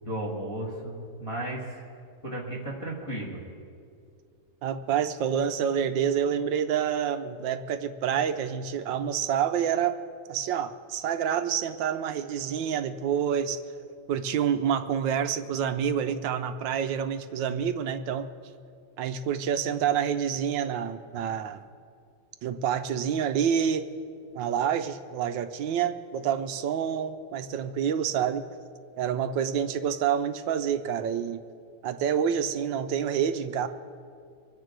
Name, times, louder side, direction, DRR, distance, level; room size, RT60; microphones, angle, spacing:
voice 1, 0.0-1.8 2.2-3.4, right 1 dB, 15° left, -5 dB, 2.1 m, -34 dB
voice 2, 4.6-10.0 10.3-18.3 19.0-21.6 22.4-23.8 24.3-28.5 29.0-31.4 31.8-33.7, right 8 dB, 70° right, 9 dB, 1.3 m, -28 dB
25.0 x 8.9 x 4.7 m, 2.3 s
omnidirectional pair, 2.3 m